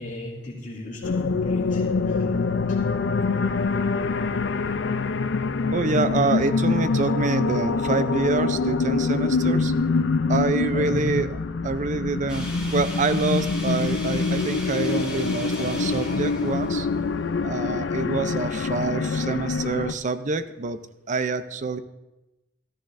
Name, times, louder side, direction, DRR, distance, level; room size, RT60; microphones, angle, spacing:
voice 1, 0.0-2.2 2.7-2.8 10.7-11.0, left 1 dB, 45° left, -4 dB, 2.6 m, -35 dB
sound 1, 1.0-19.9, left 4 dB, 70° left, 0.4 m, -25 dB
voice 2, 5.7-9.7 10.3-11.3 11.6-16.9 17.4-20.8 21.1-21.8, right 3 dB, 40° right, 11 dB, 0.5 m, -26 dB
sound 2, 12.3-17.5, left 1 dB, 5° right, 2.2 m, -38 dB
13.5 x 13.0 x 2.6 m, 1.0 s
head